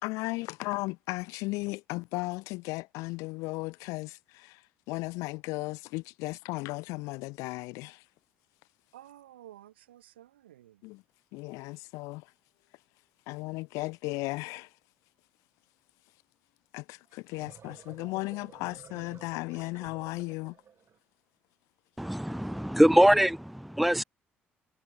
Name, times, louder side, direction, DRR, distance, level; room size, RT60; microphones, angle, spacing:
voice 1, 0.0-8.0 10.8-11.0 11.3-12.3 13.3-14.7 16.7-20.6, left 24 dB, 70° left, 1.2 m, -36 dB
voice 2, 8.9-10.8, right 13 dB, 80° right, 7.7 m, -52 dB
sound 1, 17.1-21.0, right 8 dB, 50° right, 4.7 m, -53 dB
voice 3, 22.0-24.0, equal, ahead, 0.4 m, -23 dB
figure-of-eight pair, 50°, 6 cm